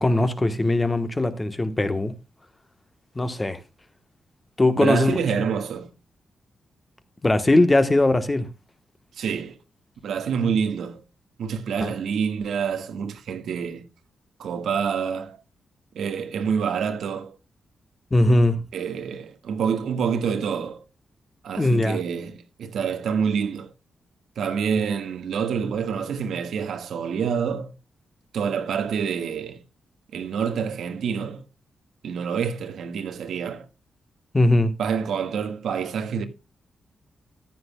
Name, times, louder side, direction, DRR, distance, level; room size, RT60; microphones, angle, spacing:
voice 1, 0.0-2.1 3.1-3.6 4.6-5.2 7.2-8.5 11.8-11.9 18.1-18.6 21.6-22.0 24.8-24.9 34.3-34.7, left 2 dB, 15° left, 1.1 m, -20 dB
voice 2, 4.7-5.9 9.2-9.6 10.0-11.0 11.4-13.8 14.4-15.4 15.9-17.4 18.7-20.8 21.4-23.7 24.4-27.7 28.3-29.6 30.1-31.4 32.0-33.7 34.8-36.2, right 6 dB, 85° right, 1.5 m, -27 dB
14.5 x 10.5 x 2.2 m
wide cardioid pair, 170°, 0 cm